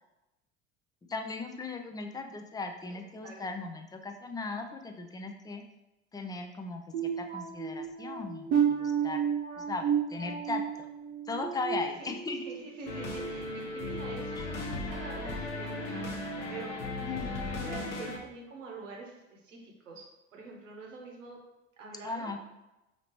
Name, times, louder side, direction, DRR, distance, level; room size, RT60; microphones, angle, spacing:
voice 1, 1.1-5.6 6.1-9.2 9.6-10.6 11.2-12.4 14.4-14.5 17.0-17.4 22.0-22.4, left 3 dB, 10° left, 5 dB, 0.4 m, -38 dB
voice 2, 2.9-3.4 12.0-12.1 12.4-16.8 17.4-20.0 20.3-21.4 21.8-22.4, right 3 dB, 90° right, -1 dB, 1.0 m, -45 dB
sound 1, 6.9-12.6 13.0-13.3 13.8-14.0, right 8 dB, 70° right, 0.8 m, -32 dB
sound 2, 12.9-18.2, left 2 dB, 70° left, 1.0 m, -36 dB
5.0 x 2.8 x 3.0 m, 0.99 s
hypercardioid pair, 75°, 37 cm